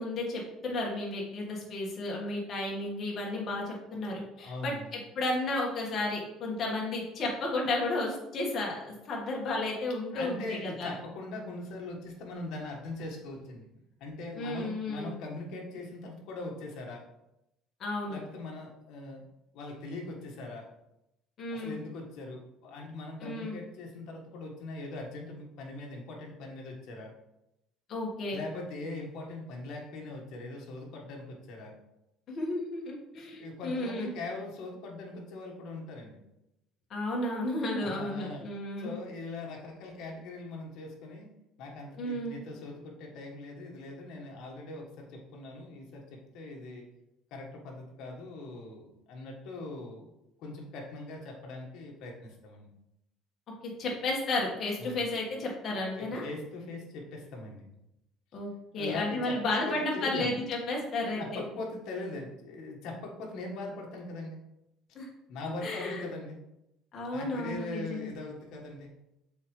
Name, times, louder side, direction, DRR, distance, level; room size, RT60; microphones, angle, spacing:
voice 1, 0.0-4.7 5.1-10.9 14.3-15.1 17.8-18.2 21.4-21.8 23.2-23.6 27.9-28.4 32.3-34.1 36.9-39.0 42.0-42.4 53.6-56.2 58.3-61.4 64.9-65.1 65.6-66.1 66.9-68.1, left 2 dB, 40° left, -2 dB, 1.7 m, -33 dB
voice 2, 4.4-4.9 10.1-17.1 18.1-19.2 19.5-20.7 21.5-27.1 28.3-31.7 33.4-36.2 37.8-38.4 38.8-41.3 41.6-46.9 47.3-50.1 50.4-52.7 54.8-55.0 56.0-57.7 58.7-60.3 61.2-64.4 65.3-66.4 67.1-68.9, left 2 dB, 65° left, 0 dB, 1.5 m, -41 dB
7.1 x 4.0 x 3.3 m, 0.87 s
cardioid pair, 140°, 0 cm